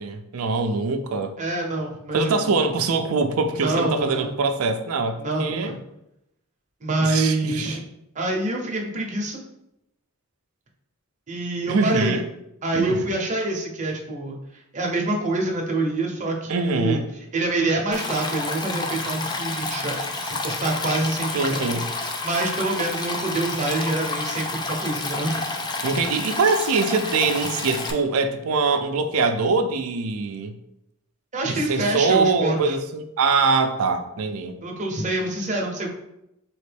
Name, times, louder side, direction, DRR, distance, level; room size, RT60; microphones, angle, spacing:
voice 1, 0.0-1.3 2.1-5.7 7.0-7.8 11.7-12.3 12.7-13.1 16.5-17.0 21.3-21.9 25.8-30.6 31.5-34.6, right 4 dB, 70° right, 8 dB, 0.4 m, -23 dB
voice 2, 1.4-2.5 3.5-4.4 5.2-5.8 6.8-7.8 8.1-9.4 11.3-12.2 12.6-17.0 17.3-21.7 22.2-25.4 31.3-32.7 34.6-35.9, right 2 dB, 35° right, 0 dB, 0.7 m, -26 dB
Stream, 17.9-27.9, left 3 dB, 20° left, 0.3 m, -29 dB
4.2 x 2.9 x 3.3 m, 0.84 s
head